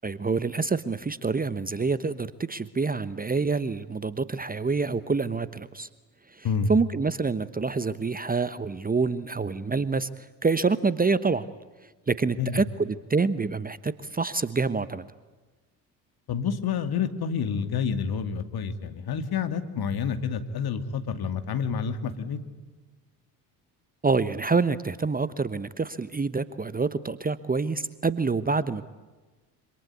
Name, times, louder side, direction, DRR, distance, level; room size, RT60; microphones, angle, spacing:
voice 1, 0.0-5.9 6.3-11.5 12.1-15.1 24.0-28.9, right 4 dB, 20° right, 16 dB, 1.1 m, -27 dB
voice 2, 16.3-22.4, left 6 dB, 50° left, 9 dB, 2.6 m, -28 dB
27.0 x 26.0 x 8.4 m, 1.2 s
hypercardioid pair, 55°, 48 cm